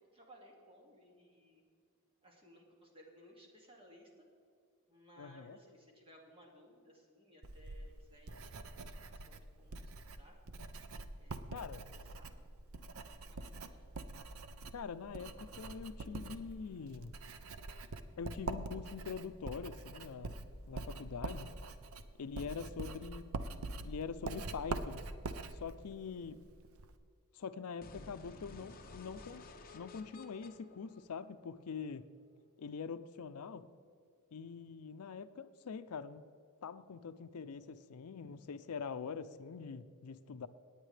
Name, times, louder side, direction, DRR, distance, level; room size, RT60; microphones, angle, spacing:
voice 1, 0.0-1.6 2.2-4.3 4.9-8.5 8.8-10.4 11.2-12.4 13.2-13.8, equal, 25° right, -1 dB, 2.1 m, -61 dB
voice 2, 5.2-5.6 11.5-11.8 14.7-17.1 18.2-20.3 20.7-21.5 22.2-23.3 23.8-25.1 25.5-26.4 27.3-29.4 29.7-32.1 32.6-33.7 34.3-36.2 36.6-40.5, left 5 dB, 85° left, 13 dB, 0.5 m, -44 dB
Writing, 7.4-27.0, right 2 dB, 70° right, 0.6 m, -45 dB
sound 1, 27.8-31.8, left 3 dB, 40° left, 0.8 m, -54 dB
18.0 x 9.0 x 3.3 m, 2.3 s
head